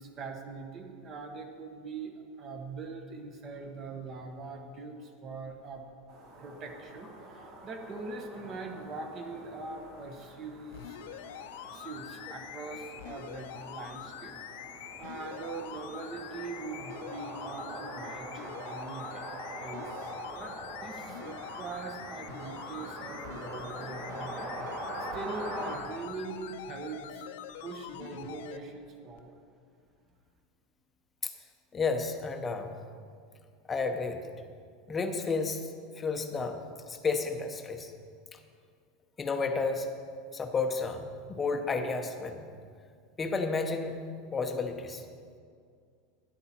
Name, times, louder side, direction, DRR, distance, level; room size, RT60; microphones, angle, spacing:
voice 1, 0.0-5.9 6.4-11.0 11.7-14.3 15.0-19.3 19.6-24.8 25.1-27.3 27.6-29.3, right 3 dB, 30° right, 4 dB, 1.3 m, -42 dB
sound 1, 6.1-25.8, right 1 dB, 50° right, 2.4 m, -43 dB
sound 2, 10.7-28.6 29.2-29.3, left 10 dB, 80° left, 0.7 m, -45 dB
voice 2, 31.7-32.8 33.7-34.2 34.9-35.6 36.0-37.9 39.2-39.9 40.3-42.5 43.2-44.0 44.3-45.0, left 4 dB, 15° left, 5 dB, 0.8 m, -31 dB
12.5 x 10.5 x 4.4 m, 2.2 s
supercardioid pair, 160°, 0 cm